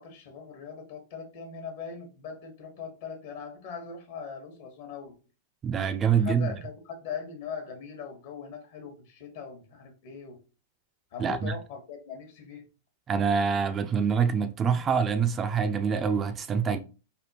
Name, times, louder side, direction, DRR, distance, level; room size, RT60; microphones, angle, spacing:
voice 1, 0.0-5.1 6.1-10.4 11.1-12.7, left 6 dB, 60° left, 1.1 m, -40 dB
voice 2, 5.6-6.5 11.2-11.6 13.1-16.8, right 6 dB, 25° right, 0.3 m, -25 dB
3.4 x 2.2 x 2.8 m
hypercardioid pair, 120°, 0 cm